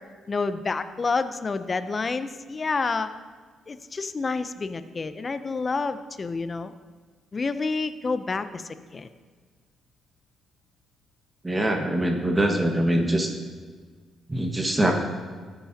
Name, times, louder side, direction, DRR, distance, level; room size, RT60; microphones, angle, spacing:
voice 1, 0.3-3.1 3.7-6.7 7.3-8.6 8.9-9.1, left 4 dB, 35° left, 11 dB, 0.6 m, -28 dB
voice 2, 11.4-13.3 14.3-14.9, right 1 dB, 15° right, 2 dB, 1.5 m, -23 dB
15.0 x 9.0 x 2.8 m, 1.5 s
cardioid pair, 90°, 0 cm